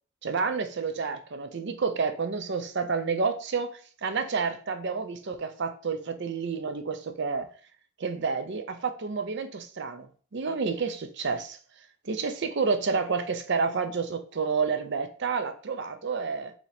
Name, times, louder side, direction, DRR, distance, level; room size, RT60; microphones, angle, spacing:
voice 1, 0.2-3.7 4.0-7.5 8.0-11.6 12.0-16.5, right 5 dB, 55° right, 0.6 m, -29 dB
4.3 x 3.0 x 4.1 m
head